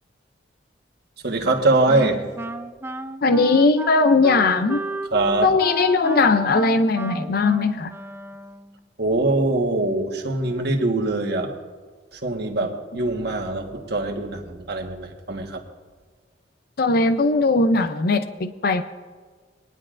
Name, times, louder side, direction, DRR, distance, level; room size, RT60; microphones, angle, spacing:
voice 1, 1.2-2.2 5.1-5.5 9.0-11.6 12.1-15.6, right 2 dB, 60° right, 2 dB, 1.4 m, -23 dB
Wind instrument woodwind instrument, 1.4-8.8, right 2 dB, 15° right, 0.3 m, -33 dB
voice 2, 3.2-4.8 5.4-7.9 16.8-18.8, left 3 dB, 55° left, 10 dB, 0.5 m, -19 dB
20.5 x 10.5 x 2.5 m, 1.5 s
head